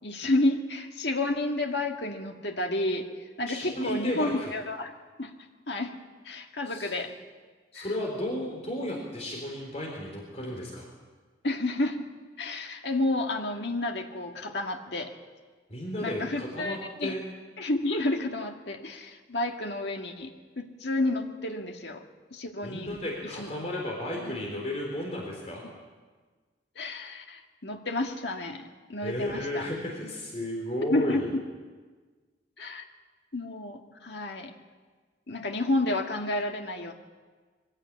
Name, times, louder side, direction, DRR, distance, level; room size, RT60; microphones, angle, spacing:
voice 1, 0.0-3.1 3.4-4.9 5.2-5.3 5.7-5.9 6.3-7.1 7.8-7.9 11.4-12.0 12.4-15.1 16.0-17.1 17.6-20.3 20.6-22.0 22.3-23.0 23.4-23.5 24.2-24.3 26.8-29.7 30.9-31.2 32.6-32.9 33.3-34.5 35.3-36.9, left 2 dB, 60° left, 3 dB, 2.0 m, -30 dB
voice 2, 3.5-4.5 6.7-6.9 7.7-10.8 15.7-17.2 22.6-25.6 29.0-31.3, left 1 dB, 35° left, -1 dB, 3.8 m, -33 dB
23.5 x 16.0 x 8.8 m, 1.4 s
head